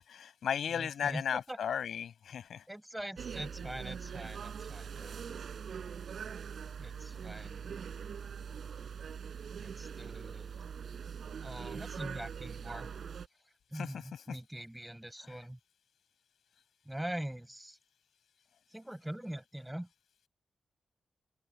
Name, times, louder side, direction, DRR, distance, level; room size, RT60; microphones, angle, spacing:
voice 1, 0.0-2.6 13.7-14.4 15.2-15.4, left 8 dB, 85° left, 7.4 m, -36 dB
voice 2, 0.7-1.6 2.7-5.2 6.8-7.7 9.6-10.6 11.4-12.9 13.7-15.6 16.9-17.8 18.7-19.9, right 1 dB, 5° right, 6.3 m, -43 dB
sound 1, 3.2-13.3, right 7 dB, 65° right, 7.5 m, -42 dB
open air
wide cardioid pair, 125°, 0 cm